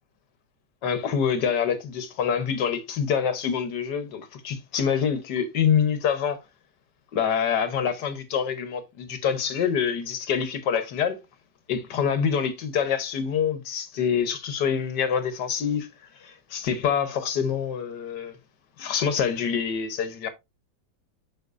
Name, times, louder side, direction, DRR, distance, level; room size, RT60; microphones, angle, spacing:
voice 1, 0.8-6.4 7.1-11.2 11.7-15.9 16.2-18.4 18.8-20.3, left 7 dB, 65° left, 1.6 m, -26 dB
7.9 x 5.5 x 2.5 m
omnidirectional pair, 2.1 m